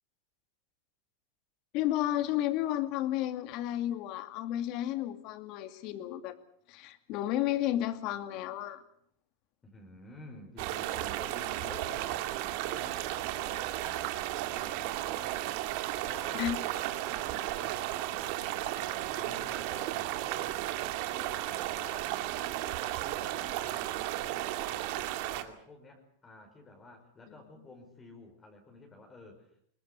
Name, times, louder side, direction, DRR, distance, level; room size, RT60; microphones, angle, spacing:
voice 1, 1.7-6.4 6.7-8.8 16.3-16.6, left 13 dB, 50° left, 10 dB, 2.4 m, -32 dB
voice 2, 9.6-14.1 14.4-15.5 16.0-20.6 21.1-23.9 24.2-29.5, left 2 dB, 20° left, 2 dB, 5.3 m, -52 dB
sound 1, 10.6-25.4, right 14 dB, 60° right, 2.3 m, -34 dB
22.0 x 20.0 x 8.2 m, 0.67 s
supercardioid pair, 120°, 0 cm